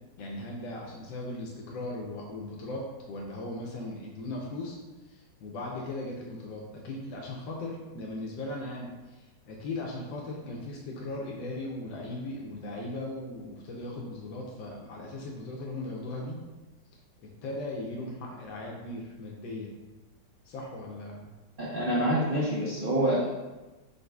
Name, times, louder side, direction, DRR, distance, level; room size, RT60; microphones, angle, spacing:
voice 1, 0.2-4.8 5.0-16.4 17.4-19.7 20.4-21.3, left 2 dB, 85° left, -2 dB, 1.3 m, -38 dB
voice 2, 21.6-23.4, right 1 dB, 75° right, -6 dB, 0.4 m, -27 dB
5.2 x 3.9 x 2.3 m, 1.2 s
omnidirectional pair, 1.9 m